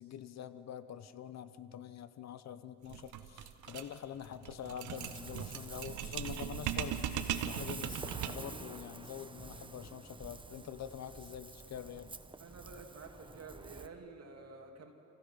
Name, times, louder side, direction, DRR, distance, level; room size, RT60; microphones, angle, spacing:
voice 1, 0.0-12.1, left 9 dB, 60° left, 13 dB, 0.9 m, -46 dB
sound 1, 2.9-8.6, right 10 dB, 75° right, 1.2 m, -39 dB
Ocean, 4.9-13.9, right 3 dB, 15° right, 0.9 m, -49 dB
voice 2, 12.4-14.9, right 4 dB, 55° right, 3 dB, 2.8 m, -50 dB
29.5 x 15.5 x 5.8 m, 2.7 s
cardioid pair, 90°, 30 cm